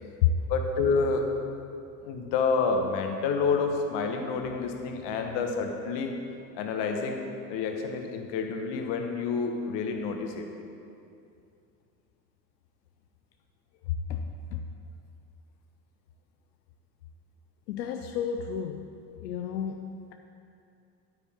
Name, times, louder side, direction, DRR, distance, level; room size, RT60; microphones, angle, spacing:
voice 1, 0.5-1.3 2.0-6.1 6.5-7.2 7.5-10.5, left 4 dB, 55° left, 4 dB, 1.4 m, -28 dB
voice 2, 14.1-14.7 17.7-18.9 19.2-20.1, left 8 dB, 85° left, 5 dB, 0.6 m, -30 dB
9.9 x 9.2 x 3.7 m, 2.5 s
hypercardioid pair, 80°, 50 cm